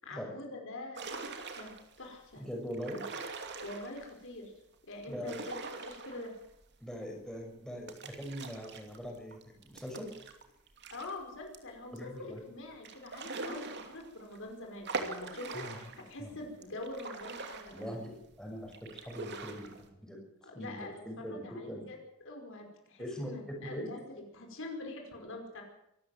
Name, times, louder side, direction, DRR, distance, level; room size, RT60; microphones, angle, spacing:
voice 1, 0.0-1.7 2.0-2.4 3.6-4.5 4.8-6.3 10.9-12.1 12.5-18.0 20.4-25.6, left 2 dB, 60° left, 2 dB, 5.1 m, -45 dB
sound 1, 1.0-2.0 2.7-4.1 5.0-6.6 7.0-7.1 7.9-11.1 11.5-11.6 12.0-12.1 12.8-14.4 14.9-16.1 16.6-18.2 18.7-19.9, right 3 dB, 50° right, 2.8 m, -42 dB
voice 2, 2.4-3.0 5.1-5.4 6.8-10.1 11.9-12.4 15.5-15.8 16.2-16.3 17.7-20.2 20.5-21.8 23.0-23.9, equal, 5° left, 0 dB, 6.2 m, -42 dB
25.0 x 14.0 x 7.7 m, 0.82 s
head